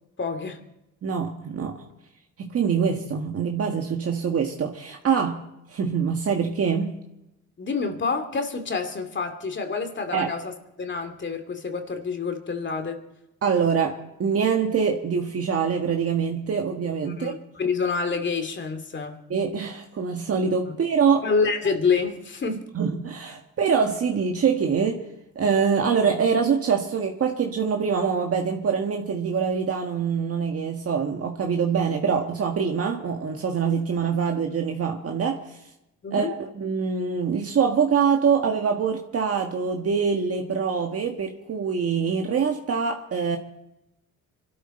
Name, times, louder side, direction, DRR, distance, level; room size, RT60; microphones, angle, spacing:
voice 1, 0.2-0.6 7.6-13.0 17.1-19.2 20.7-20.8 21.2-22.7 36.0-36.3, left 5 dB, 40° left, 6 dB, 2.6 m, -27 dB
voice 2, 1.0-1.8 2.4-5.4 5.7-6.9 10.1-10.3 13.4-17.4 19.3-21.2 22.7-25.0 25.3-35.6 36.1-43.4, right 6 dB, 50° right, 2 dB, 1.6 m, -24 dB
24.5 x 13.0 x 4.4 m, 0.90 s
cardioid pair, 90°, 30 cm